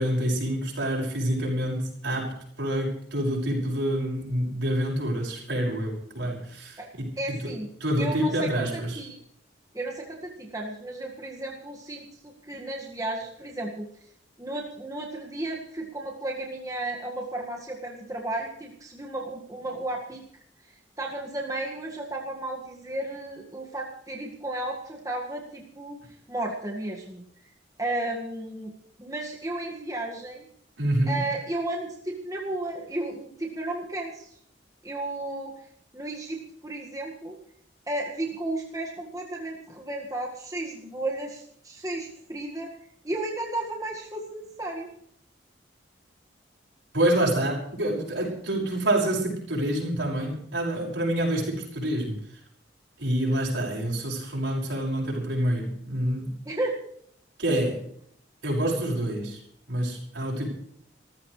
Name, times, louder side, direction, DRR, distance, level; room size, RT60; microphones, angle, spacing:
voice 1, 0.0-7.5 7.8-9.0 30.8-31.2 46.9-52.2 53.0-56.3 57.4-57.8 58.4-59.4 59.7-60.5, right 1 dB, 80° right, -1 dB, 6.0 m, -27 dB
voice 2, 7.2-7.7 8.0-9.2 9.7-13.9 14.4-20.3 21.0-26.0 26.3-27.2 27.8-28.7 29.0-30.5 31.1-34.3 34.8-35.7 35.9-37.4 37.9-42.7 43.0-44.9 56.5-56.8, right 2 dB, 20° right, -2 dB, 1.8 m, -33 dB
27.5 x 14.5 x 3.3 m, 0.66 s
head